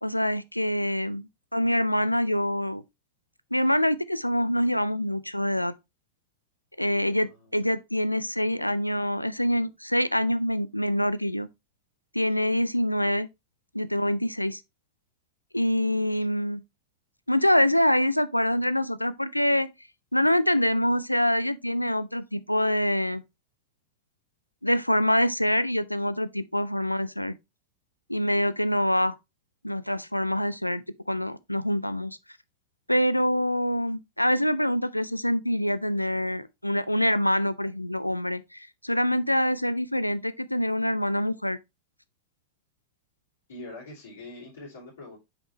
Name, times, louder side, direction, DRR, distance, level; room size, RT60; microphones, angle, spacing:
voice 1, 0.0-2.8 3.5-5.7 6.8-11.5 12.1-13.3 13.7-14.6 15.5-16.6 17.3-19.7 20.1-23.2 24.6-27.3 28.1-29.1 29.6-32.2 32.9-41.6, equal, 90° left, 0.4 m, -25 dB
voice 2, 7.2-7.6 28.7-29.0 43.5-45.2, left 2 dB, 65° left, 3.1 m, -44 dB
6.2 x 5.1 x 3.0 m
figure-of-eight pair, 90°, 0 cm